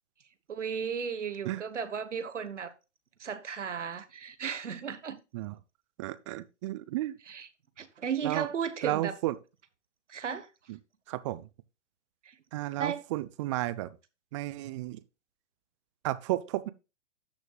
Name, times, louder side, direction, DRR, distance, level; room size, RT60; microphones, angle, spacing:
voice 1, 0.5-2.7 3.2-5.2 7.3-7.5 7.8-9.2 10.1-10.5 12.2-12.4 12.8-13.0, right 7 dB, 75° right, 1.2 m, -35 dB
voice 2, 6.0-7.1 8.2-8.5 8.8-9.4 10.7-10.8 11.1-11.5 12.5-14.0 14.3-15.0 16.0-16.7, right 16 dB, 25° right, 0.5 m, -33 dB
13.0 x 6.3 x 2.3 m
figure-of-eight pair, 120°, 36 cm